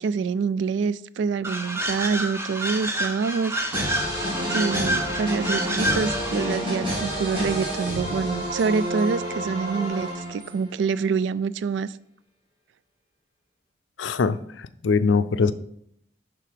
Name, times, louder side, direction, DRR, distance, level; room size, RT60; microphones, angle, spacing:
voice 1, 0.0-3.9 4.5-11.9, right 5 dB, 75° right, 0.3 m, -26 dB
sound 1, 1.4-6.6, right 1 dB, 15° right, 0.8 m, -29 dB
sound 2, 3.7-10.7, equal, 30° right, 3.1 m, -29 dB
voice 2, 14.0-15.5, left 5 dB, 80° left, 0.4 m, -22 dB
10.5 x 3.8 x 5.0 m
head